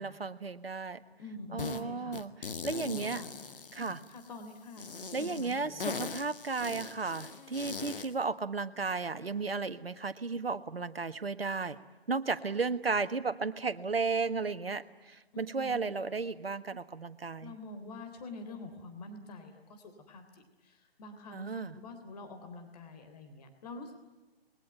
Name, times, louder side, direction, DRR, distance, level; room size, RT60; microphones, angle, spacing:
voice 1, 0.0-1.0 1.5-3.2 3.7-4.0 5.1-11.8 12.1-17.5 21.3-21.7, right 4 dB, 70° right, 11 dB, 1.6 m, -34 dB
voice 2, 1.2-3.3 3.7-5.9 15.3-15.8 17.4-24.0, left 2 dB, 40° left, 6 dB, 3.4 m, -47 dB
sound 1, 1.6-1.8 2.1-4.3 4.8-8.1, left 5 dB, 60° left, 1.7 m, -41 dB
28.0 x 22.0 x 9.2 m, 1.2 s
figure-of-eight pair, 135°, 31 cm